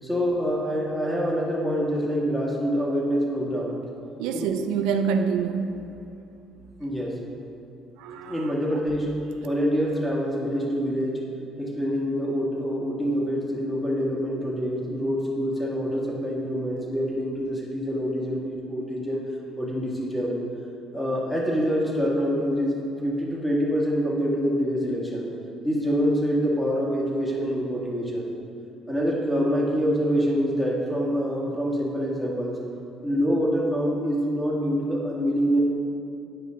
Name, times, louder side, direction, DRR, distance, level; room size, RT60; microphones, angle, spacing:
voice 1, 0.0-3.7 4.3-4.5 6.8-7.2 8.3-9.1 9.4-11.3 11.6-19.2 19.6-20.4 20.9-22.7 23.0-25.3 25.6-28.3 28.9-32.5 33.0-35.6, equal, 5° left, -5 dB, 1.8 m, -26 dB
voice 2, 4.2-5.8 8.0-8.5, right 6 dB, 85° right, 7 dB, 0.4 m, -26 dB
9.8 x 5.0 x 3.9 m, 2.6 s
cardioid pair, 95°, 0 cm